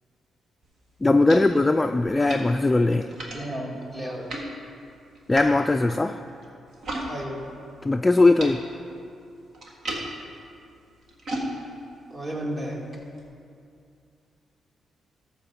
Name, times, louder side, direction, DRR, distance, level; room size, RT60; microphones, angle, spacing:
sound 1, 0.6-7.1 7.4-13.2, right 1 dB, 65° right, 1.8 m, -38 dB
voice 1, 1.0-3.1 5.3-6.2 7.8-8.6, left 2 dB, 20° left, 7 dB, 0.3 m, -20 dB
voice 2, 3.3-4.3 6.9-7.4 12.1-12.8, equal, 35° right, -2 dB, 2.3 m, -33 dB
13.0 x 4.5 x 7.0 m, 2.5 s
cardioid pair, 75°, 0 cm